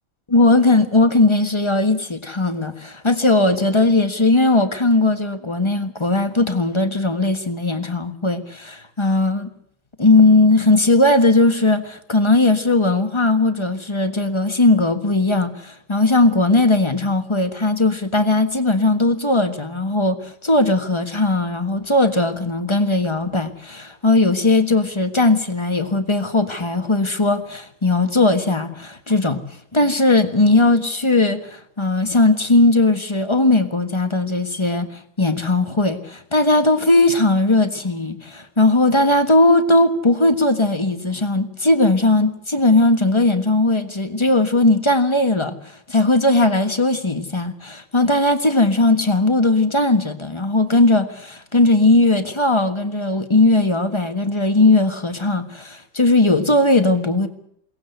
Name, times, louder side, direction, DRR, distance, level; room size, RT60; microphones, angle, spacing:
voice 1, 0.3-9.5 10.0-29.4 29.7-57.3, left 2 dB, 15° left, 1.2 m, -18 dB
22.5 x 18.5 x 8.1 m
omnidirectional pair, 2.2 m